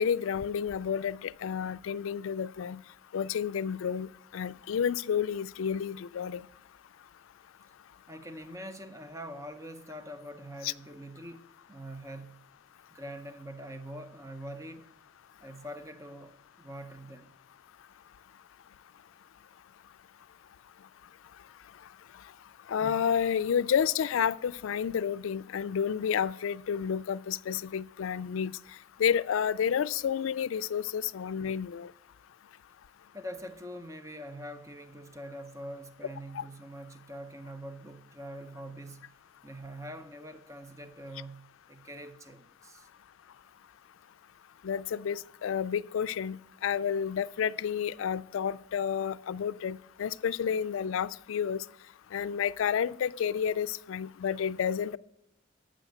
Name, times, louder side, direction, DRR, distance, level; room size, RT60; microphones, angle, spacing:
voice 1, 0.0-2.8 3.1-6.4 10.6-10.7 22.7-28.5 29.0-31.9 36.3-36.4 44.6-51.6 52.1-55.0, left 7 dB, 85° left, 0.3 m, -30 dB
voice 2, 8.1-12.5 12.9-14.9 15.4-17.3 33.1-39.1 39.4-42.9, equal, 15° right, 0.6 m, -44 dB
9.1 x 6.3 x 7.8 m
head